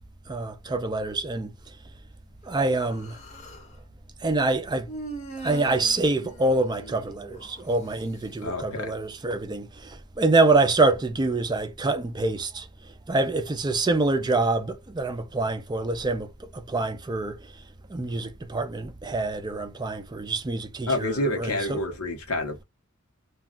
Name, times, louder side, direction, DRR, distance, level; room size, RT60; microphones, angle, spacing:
voice 1, 0.3-1.5 2.4-3.2 4.2-4.9 5.4-17.5 17.9-21.8, right 3 dB, 20° right, 0.4 m, -26 dB
Human voice, 2.7-3.7 4.9-7.6, right 1 dB, 35° left, 0.8 m, -41 dB
voice 2, 8.4-9.0 20.9-22.6, left 1 dB, 80° left, 0.9 m, -28 dB
2.3 x 2.2 x 3.6 m
head